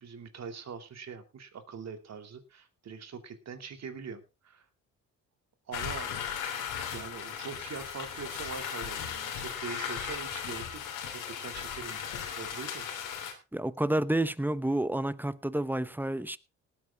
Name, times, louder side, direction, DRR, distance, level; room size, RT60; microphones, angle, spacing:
voice 1, 0.0-4.7 5.7-6.2 6.9-12.0 12.3-12.9, right 6 dB, 55° right, 2.5 m, -43 dB
sound 1, 5.7-13.3, left 8 dB, 85° left, 3.2 m, -37 dB
voice 2, 13.5-16.4, right 1 dB, 5° right, 0.8 m, -29 dB
18.0 x 9.1 x 3.6 m
cardioid pair, 80°, 32 cm